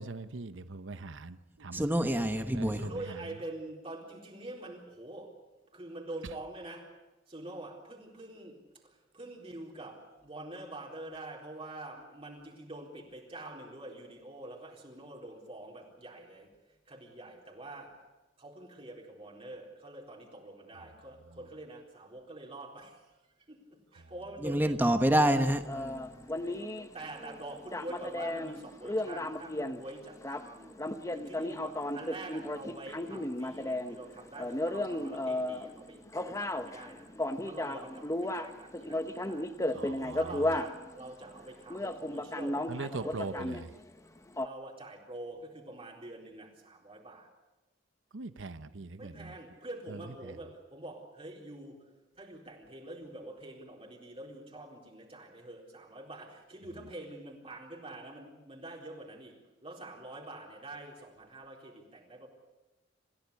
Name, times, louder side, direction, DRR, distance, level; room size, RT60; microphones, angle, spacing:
voice 1, 0.0-1.8 2.5-2.7 39.8-40.2 42.7-43.3 48.1-49.1, right 3 dB, 85° right, 0.9 m, -41 dB
voice 2, 1.7-2.8 24.4-26.1, right 1 dB, 10° right, 1.1 m, -27 dB
voice 3, 2.7-5.4 5.7-7.0 7.3-18.0 18.4-24.8 26.3-30.8 31.1-37.1 37.4-43.6 44.4-47.3 49.0-62.3, right 2 dB, 30° right, 4.1 m, -46 dB
sound 1, 25.3-41.1 41.4-41.5 41.7-44.0 44.3-44.5, left 1 dB, 15° left, 1.0 m, -35 dB
27.5 x 15.5 x 8.4 m
head